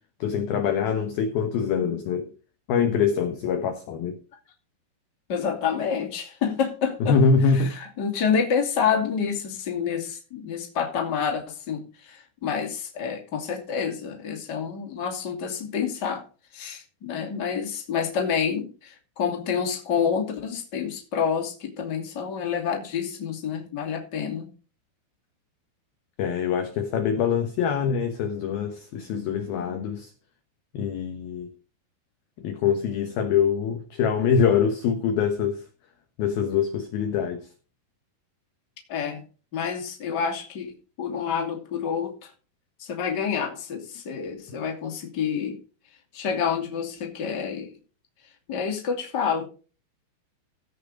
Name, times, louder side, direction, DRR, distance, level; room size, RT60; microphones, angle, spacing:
voice 1, 0.2-2.3 2.7-4.2 7.1-7.7 26.2-30.1 30.7-31.5 32.4-35.6 36.2-37.5, left 6 dB, 70° left, 2.3 m, -24 dB
voice 2, 5.3-7.2 7.4-16.2 16.5-24.5 38.9-39.2 39.5-42.3 42.8-45.6 46.1-47.7 48.5-49.5, left 7 dB, 30° left, 2.2 m, -28 dB
16.0 x 5.8 x 5.1 m
omnidirectional pair, 5.6 m